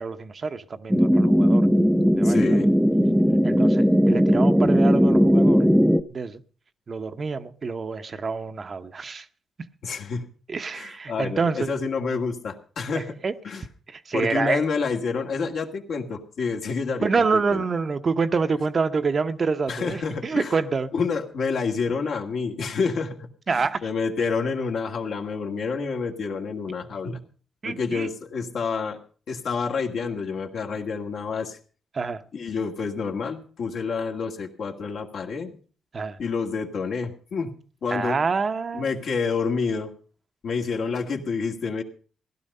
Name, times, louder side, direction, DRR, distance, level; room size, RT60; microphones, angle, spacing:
voice 1, 0.0-1.7 2.2-2.6 3.4-5.7 6.1-6.4 6.9-9.3 10.5-11.7 12.9-13.3 13.9-14.7 17.0-20.9 23.5-23.8 27.6-28.1 31.9-32.2 35.9-36.2 37.9-38.9, right 4 dB, 40° right, 0.9 m, -27 dB
sound 1, 0.9-6.0, equal, ahead, 0.7 m, -18 dB
voice 2, 2.2-2.7 9.8-10.3 10.7-13.2 13.4-13.6 14.1-17.1 17.5-17.6 19.7-20.5 20.9-27.2 27.6-29.0 29.3-31.6 32.3-35.6 36.2-37.6 37.8-38.2 38.7-39.9 40.4-41.8, left 5 dB, 70° left, 2.0 m, -28 dB
16.5 x 11.5 x 5.4 m
cardioid pair, 90°, 0 cm